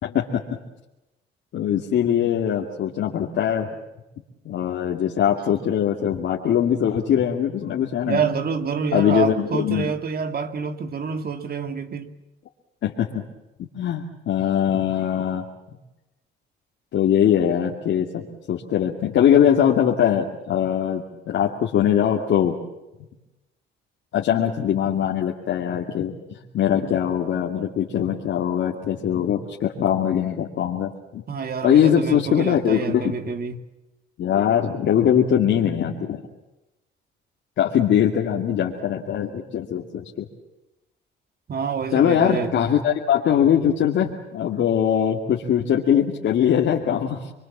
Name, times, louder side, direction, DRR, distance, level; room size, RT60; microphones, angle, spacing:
voice 1, 1.5-3.7 4.5-8.2 8.9-9.9 12.8-13.2 13.7-15.4 16.9-22.5 24.1-31.2 31.6-33.2 34.2-36.2 37.6-40.3 41.9-47.3, left 9 dB, 70° left, 2.4 m, -21 dB
voice 2, 8.1-12.1 31.3-33.6 41.5-42.7, right 5 dB, 50° right, 2.4 m, -27 dB
27.5 x 23.0 x 7.4 m
cardioid pair, 90°, 20 cm